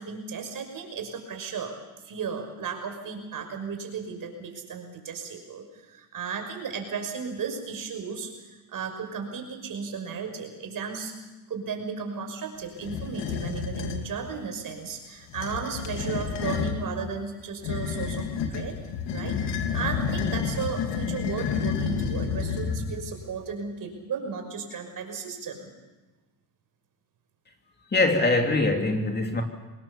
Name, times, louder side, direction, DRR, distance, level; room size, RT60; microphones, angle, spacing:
voice 1, 0.0-1.8 2.0-11.2 11.5-18.8 19.1-19.4 19.7-25.7, right 5 dB, 50° right, 4 dB, 6.0 m, -35 dB
sound 1, 12.8-14.1 15.2-16.8 17.6-23.1, left 6 dB, 75° left, 2.7 m, -30 dB
voice 2, 27.9-29.4, left 2 dB, 25° left, 3 dB, 2.8 m, -23 dB
25.5 x 20.0 x 7.2 m, 1.2 s
cardioid pair, 100°, 42 cm